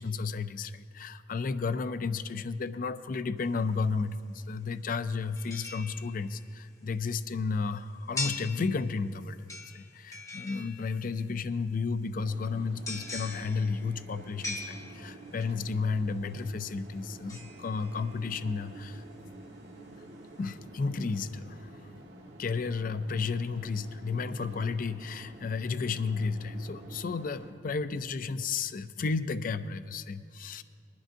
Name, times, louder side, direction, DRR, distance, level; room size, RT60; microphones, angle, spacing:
voice 1, 0.0-19.0 20.4-21.7 22.4-30.6, left 4 dB, 50° left, 12 dB, 0.4 m, -32 dB
sound 1, 3.4-3.5 5.4-6.5 8.2-9.1 9.5-11.2 12.9-15.4 17.3-18.5 18.9-19.0, left 3 dB, 20° left, 0.9 m, -41 dB
sound 2, 12.2-27.5, right 1 dB, 85° right, 1.5 m, -49 dB
21.0 x 11.5 x 2.6 m, 2.2 s
head